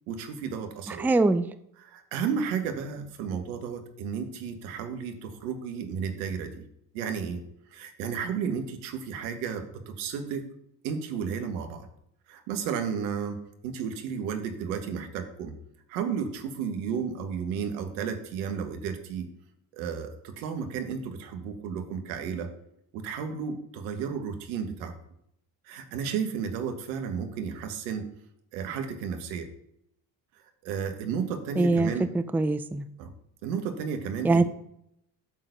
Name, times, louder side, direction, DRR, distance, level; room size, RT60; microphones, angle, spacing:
voice 1, 0.1-1.1 1.8-6.6 6.9-7.4 7.7-10.5 10.8-11.9 12.3-15.5 15.9-19.3 19.7-22.5 22.9-24.9 25.6-28.1 28.5-29.5 30.6-32.1 33.0-33.1 33.4-34.4, right 6 dB, 80° right, 1.6 m, -33 dB
voice 2, 1.0-1.5 31.6-31.9 32.3-32.9 34.2-34.4, right 3 dB, 5° right, 0.5 m, -22 dB
9.2 x 4.0 x 6.7 m
supercardioid pair, 75°, 50 cm